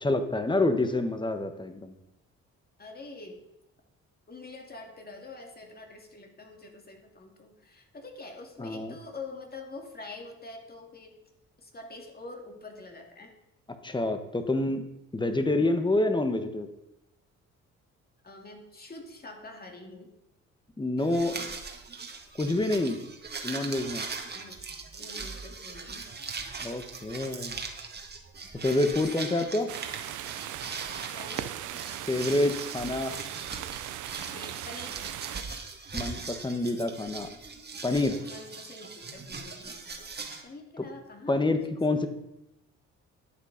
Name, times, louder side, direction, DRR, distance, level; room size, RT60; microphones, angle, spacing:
voice 1, 0.0-1.9 8.6-8.9 13.8-14.8 15.1-16.7 20.8-21.5 22.4-23.0 23.4-24.1 26.6-27.6 28.6-29.7 32.1-33.1 35.9-37.3 37.8-38.2 40.8-40.9 41.3-42.1, left 2 dB, 15° left, 8 dB, 1.4 m, -27 dB
voice 2, 2.8-3.4 4.3-11.2 11.6-13.3 18.2-20.1 24.3-24.6 25.0-26.1 28.8-29.0 31.1-31.6 34.3-35.2 38.2-40.1 40.4-41.6, left 3 dB, 30° left, 3 dB, 2.4 m, -45 dB
sound 1, 21.0-40.4, right 4 dB, 35° right, 2.0 m, -40 dB
sound 2, 29.7-35.4, right 13 dB, 80° right, 0.7 m, -38 dB
11.5 x 8.4 x 5.2 m, 0.87 s
cardioid pair, 90°, 30 cm